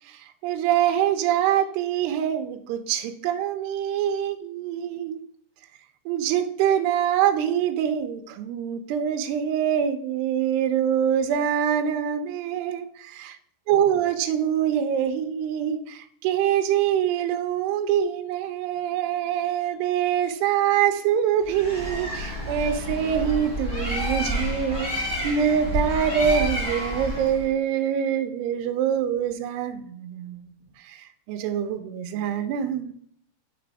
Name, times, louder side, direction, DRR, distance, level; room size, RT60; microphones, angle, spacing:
voice 1, 0.0-5.2 6.1-13.4 13.7-30.5 30.8-32.9, right 9 dB, 85° right, 6 dB, 2.6 m, -25 dB
Bird, 21.4-27.5, equal, ahead, 1.6 m, -29 dB
5.9 x 4.0 x 4.7 m, 0.63 s
omnidirectional pair, 4.9 m